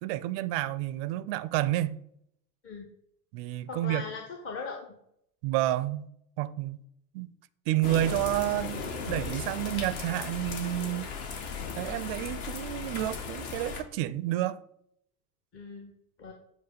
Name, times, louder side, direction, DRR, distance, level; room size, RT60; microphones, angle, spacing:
voice 1, 0.0-2.0 3.3-4.1 5.4-6.1 6.4-6.8 7.1-7.3 7.7-11.1 11.8-14.6, right 14 dB, 40° right, 0.5 m, -30 dB
voice 2, 3.7-4.9 11.2-11.3 15.5-15.9 16.2-16.3, left 5 dB, 30° left, 1.0 m, -39 dB
sound 1, 7.8-13.8, left 5 dB, 45° left, 1.3 m, -37 dB
7.9 x 3.0 x 5.6 m
figure-of-eight pair, 75°, 49 cm